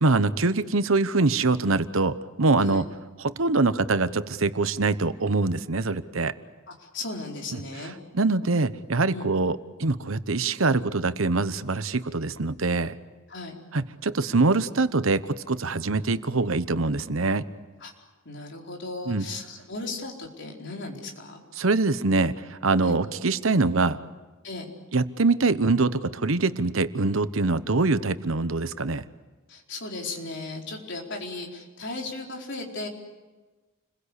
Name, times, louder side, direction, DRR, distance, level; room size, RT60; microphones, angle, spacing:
voice 1, 0.0-2.9 3.2-6.3 8.1-12.9 13.7-17.4 19.1-19.2 21.6-24.0 24.9-29.0, right 3 dB, 75° right, 13 dB, 1.0 m, -24 dB
voice 2, 6.7-7.9 9.1-9.3 13.3-13.6 17.8-17.9 18.2-21.4 22.8-23.0 24.4-24.7 29.5-32.9, left 2 dB, 60° left, 0 dB, 4.5 m, -36 dB
29.5 x 22.0 x 8.3 m, 1.2 s
head